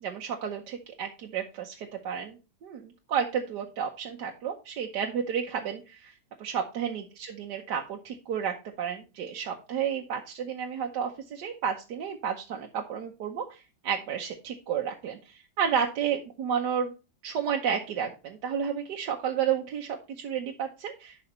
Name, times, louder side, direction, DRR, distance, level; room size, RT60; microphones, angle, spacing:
voice 1, 0.0-2.4 2.6-6.1 6.4-16.9 17.2-21.2, right 7 dB, 65° right, 2 dB, 1.4 m, -31 dB
11.0 x 4.9 x 4.2 m, 0.31 s
omnidirectional pair, 2.0 m